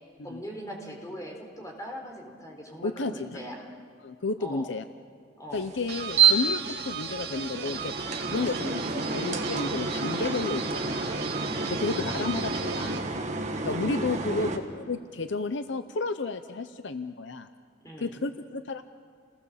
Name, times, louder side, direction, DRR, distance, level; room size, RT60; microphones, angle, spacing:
voice 1, 0.2-3.7 4.4-4.7 5.4-5.7 11.5-11.8 13.7-14.5 17.8-18.2, equal, 15° left, 1 dB, 3.7 m, -40 dB
voice 2, 2.8-3.1 4.0-4.8 5.5-7.9 8.3-11.2 11.7-13.1 13.6-17.5 18.0-18.8, left 3 dB, 70° left, 10 dB, 0.7 m, -32 dB
sound 1, 5.5-14.6, right 5 dB, 35° right, 1.7 m, -29 dB
sound 2, 5.9-13.0, right 6 dB, 55° right, 1.9 m, -37 dB
29.0 x 19.0 x 7.3 m, 2.1 s
head